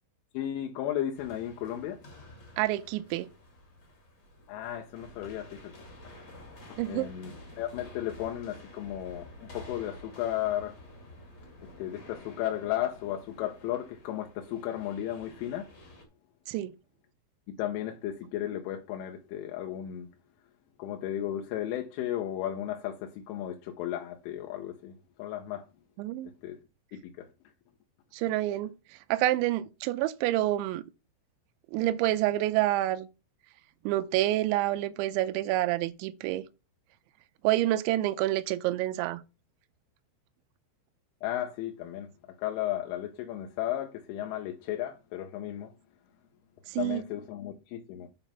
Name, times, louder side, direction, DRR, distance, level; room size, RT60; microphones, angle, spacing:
voice 1, 0.3-2.0 4.5-5.7 6.7-10.8 11.8-15.7 17.6-20.1 20.8-24.9 25.2-25.7 26.4-26.6 26.9-27.3 41.2-42.1 42.4-45.7 46.8-48.1, left 12 dB, 90° left, 3.4 m, -34 dB
sound 1, 1.1-16.0, left 1 dB, 40° left, 1.8 m, -50 dB
voice 2, 2.6-3.3 6.8-7.1 16.5-16.7 26.0-26.3 28.1-28.7 29.1-30.8 31.7-33.1 33.9-36.4 37.4-39.2 46.7-47.0, right 15 dB, 85° right, 2.9 m, -28 dB
9.1 x 4.0 x 5.6 m
omnidirectional pair, 5.5 m